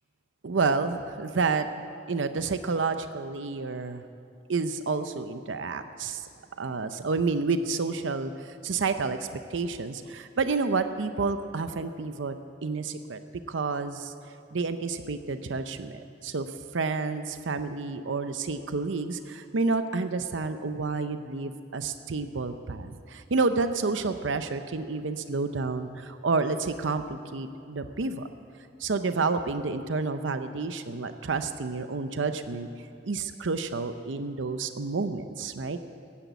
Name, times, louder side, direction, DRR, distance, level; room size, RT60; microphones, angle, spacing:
voice 1, 0.4-1.7 2.1-4.0 4.5-6.2 6.6-9.2 9.5-12.3 12.6-14.1 14.5-16.5 16.7-28.3 28.8-32.7 33.0-35.8, right 4 dB, 75° right, 9 dB, 0.6 m, -29 dB
15.0 x 10.5 x 8.2 m, 2.6 s
head